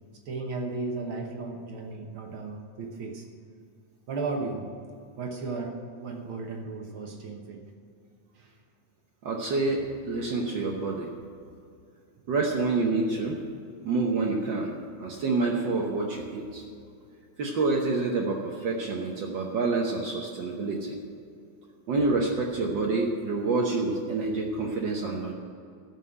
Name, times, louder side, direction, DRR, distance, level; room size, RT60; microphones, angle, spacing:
voice 1, 0.2-3.3 4.1-4.7 5.2-7.6 8.3-8.6, right 3 dB, 60° right, 2 dB, 1.5 m, -35 dB
voice 2, 9.2-11.1 12.3-13.4 13.8-14.7 15.0-16.6 17.4-21.0 21.9-25.3, right 3 dB, 75° right, -1 dB, 1.0 m, -27 dB
14.0 x 5.6 x 8.6 m, 2.4 s
omnidirectional pair, 3.5 m